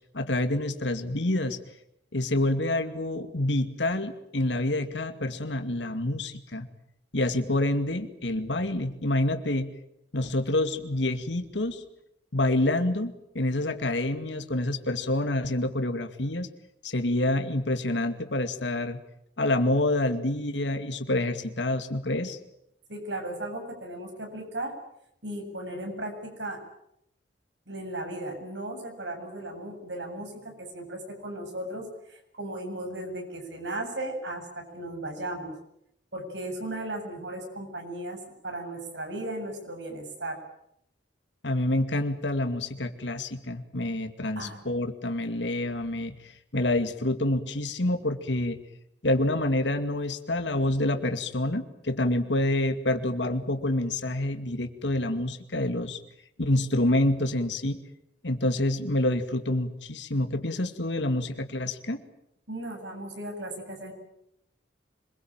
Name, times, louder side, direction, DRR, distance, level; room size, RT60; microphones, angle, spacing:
voice 1, 0.1-1.6 2.1-6.7 7.1-9.7 10.1-11.8 12.3-16.5 16.8-19.0 19.4-22.4 41.4-48.6 49.0-56.0 56.4-57.8 58.2-62.0, left 1 dB, 85° left, 8 dB, 2.3 m, -27 dB
voice 2, 22.9-24.7 25.2-26.6 27.7-35.5 36.1-40.4 44.4-44.6 62.5-63.9, right 1 dB, 75° right, 4 dB, 8.0 m, -36 dB
26.5 x 22.0 x 9.0 m, 0.78 s
head